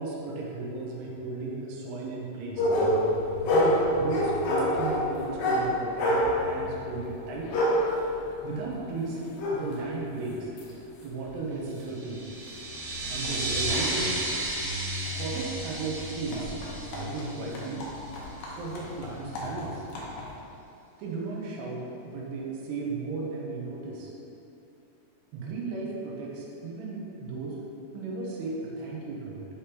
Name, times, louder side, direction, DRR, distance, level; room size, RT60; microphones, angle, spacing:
voice 1, 0.0-2.7 3.4-7.5 8.4-9.2 9.5-10.5 11.0-12.2 13.1-14.2 15.1-16.5 16.9-17.8 18.5-19.9 21.0-24.1 25.3-27.6 27.9-29.5, right 3 dB, 85° right, -3 dB, 2.9 m, -35 dB
sound 1, 2.6-10.7 11.3-11.4 12.0-12.1 12.5-20.3, left 1 dB, 85° left, 1.7 m, -29 dB
sound 2, 11.9-18.1, right 2 dB, 65° right, 2.1 m, -34 dB
7.0 x 5.1 x 3.0 m, 2.7 s
omnidirectional pair, 4.6 m